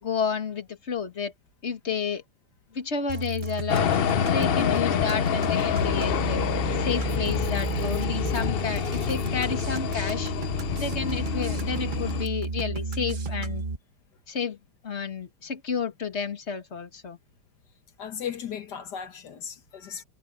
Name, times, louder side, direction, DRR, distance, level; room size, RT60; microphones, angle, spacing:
voice 1, 0.0-1.3 1.6-2.2 2.7-3.9 4.3-6.4 6.8-10.3 10.8-13.6 14.3-14.6 14.8-17.2, left 6 dB, 40° left, 2.1 m, -31 dB
sound 1, 3.1-13.8, right 3 dB, 30° right, 1.3 m, -32 dB
sound 2, 3.7-12.3, left 9 dB, 60° left, 0.6 m, -27 dB
voice 2, 18.0-20.0, left 8 dB, 85° left, 2.0 m, -36 dB
omnidirectional pair, 1.7 m